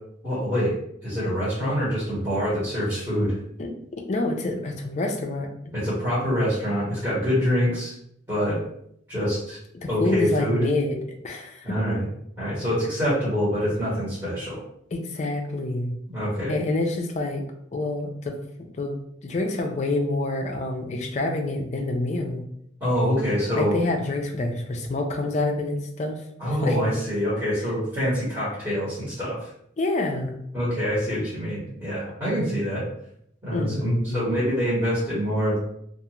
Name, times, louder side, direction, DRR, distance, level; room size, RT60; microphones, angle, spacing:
voice 1, 0.2-0.8 1.0-3.4 5.7-7.9 8.3-8.6 9.1-9.6 9.9-10.6 11.6-12.0 12.4-14.6 16.1-16.6 22.8-23.8 26.4-29.5 30.5-32.8 33.4-35.6, equal, 15° right, -11 dB, 1.1 m, -25 dB
voice 2, 3.6-5.7 9.7-11.7 14.9-16.0 16.5-17.4 17.7-18.4 18.8-22.4 23.5-26.8 29.8-30.4 33.5-34.2, left 2 dB, 35° left, 3 dB, 0.4 m, -27 dB
2.4 x 2.4 x 2.9 m, 0.71 s
head